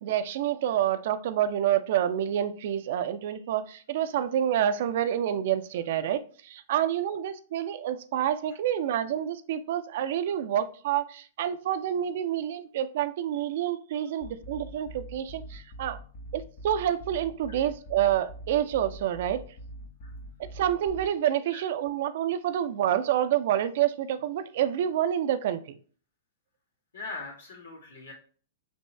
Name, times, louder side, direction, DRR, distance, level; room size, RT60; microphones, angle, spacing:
voice 1, 0.0-16.0 16.3-19.4 20.5-25.6, right 10 dB, 55° right, 11 dB, 0.4 m, -28 dB
sound 1, 14.2-21.1, right 1 dB, 50° left, 0.9 m, -44 dB
voice 2, 26.9-28.1, left 3 dB, 75° left, -3 dB, 1.9 m, -40 dB
5.3 x 3.0 x 3.3 m, 0.43 s
figure-of-eight pair, 105°, 0 cm